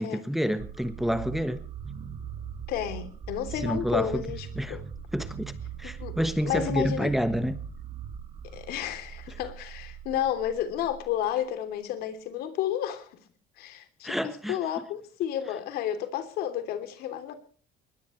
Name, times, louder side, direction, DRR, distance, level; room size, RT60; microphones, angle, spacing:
voice 1, 0.0-1.7 3.6-4.2 4.5-4.8 5.1-5.5 5.8-7.6 14.0-14.6, equal, ahead, 1.2 m, -28 dB
sound 1, 0.6-11.5, right 7 dB, 35° right, 2.2 m, -40 dB
voice 2, 2.7-4.8 6.0-6.1 6.4-7.1 8.5-13.1 13.6-17.3, left 10 dB, 75° left, 3.2 m, -31 dB
21.5 x 20.0 x 3.2 m
cardioid pair, 125°, 16 cm